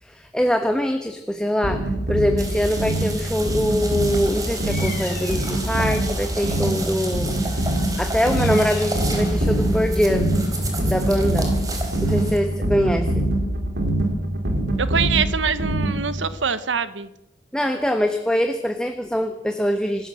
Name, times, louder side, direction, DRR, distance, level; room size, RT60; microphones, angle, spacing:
voice 1, 0.0-10.3 10.8-11.6 12.0-13.3 17.5-20.1, equal, 5° left, 5 dB, 1.2 m, -23 dB
sound 1, 1.6-16.3, right 1 dB, 70° right, 4.2 m, -24 dB
sound 2, 2.4-12.4, right 1 dB, 20° right, 3.8 m, -30 dB
Bird vocalization bird call bird song, 4.6-5.6 7.5-9.1, left 6 dB, 50° left, 2.9 m, -39 dB
voice 2, 14.8-17.1, right 6 dB, 90° right, 13 dB, 1.2 m, -24 dB
26.5 x 13.5 x 7.8 m, 0.92 s
head